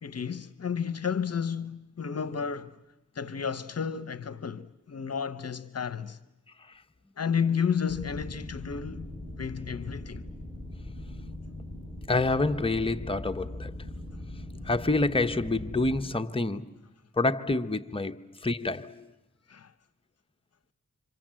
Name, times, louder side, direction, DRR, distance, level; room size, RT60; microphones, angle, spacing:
voice 1, 0.0-2.8 3.1-6.2 7.2-9.1 9.4-10.3 19.5-19.7, left 6 dB, 55° left, 0.9 m, -32 dB
sound 1, 7.9-16.0, left 1 dB, ahead, 4.6 m, -40 dB
voice 2, 12.1-13.7 14.6-16.6 17.2-19.1, left 2 dB, 20° left, 1.0 m, -28 dB
27.5 x 26.0 x 7.6 m
cardioid pair, 55°, 30 cm